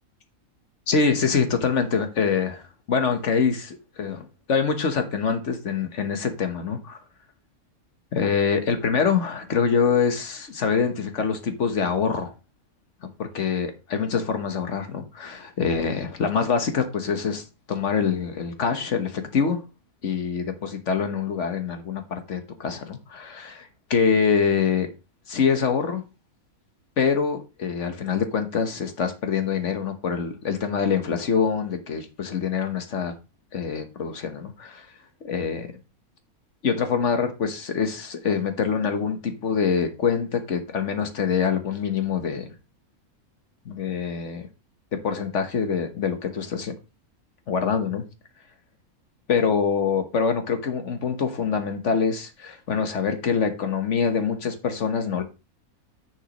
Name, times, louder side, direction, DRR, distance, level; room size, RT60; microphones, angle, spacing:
voice 1, 0.9-7.0 8.1-12.3 13.0-19.6 20.0-24.9 25.3-26.0 27.0-33.1 33.5-34.9 35.2-35.7 36.6-42.4 43.6-44.5 45.0-46.7 47.5-48.0 49.3-55.2, left 6 dB, 55° left, 1.4 m, -25 dB
10.0 x 6.2 x 2.9 m
omnidirectional pair, 1.5 m